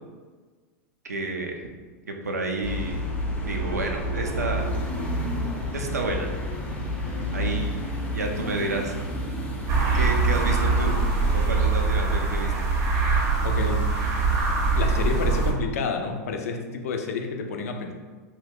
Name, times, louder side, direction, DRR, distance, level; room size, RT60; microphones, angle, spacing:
voice 1, 1.0-1.7 2.1-3.1 3.4-4.7 5.7-6.3 7.3-9.0 9.9-11.0 11.3-12.7, right 2 dB, 90° right, 2 dB, 0.5 m, -30 dB
sound 1, 2.6-11.5, equal, 15° left, 0.6 m, -30 dB
sound 2, 9.7-15.5, right 4 dB, 35° right, 0.7 m, -23 dB
voice 2, 13.4-13.8 14.7-17.9, left 4 dB, 70° left, 4 dB, 0.4 m, -29 dB
2.9 x 2.2 x 3.5 m, 1.4 s
hypercardioid pair, 100°, 8 cm